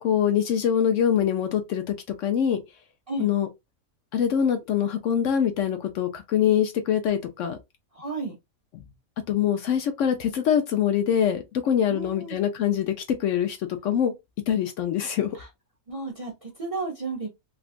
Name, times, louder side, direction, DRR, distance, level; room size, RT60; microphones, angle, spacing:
voice 1, 0.0-2.6 3.2-3.5 4.1-7.6 9.3-14.1 14.5-15.4, left 9 dB, 70° left, 0.8 m, -24 dB
voice 2, 7.9-8.4 11.9-12.4 15.3-15.5 15.9-17.3, right 3 dB, 35° right, 0.6 m, -33 dB
3.6 x 2.3 x 2.4 m
omnidirectional pair, 1.5 m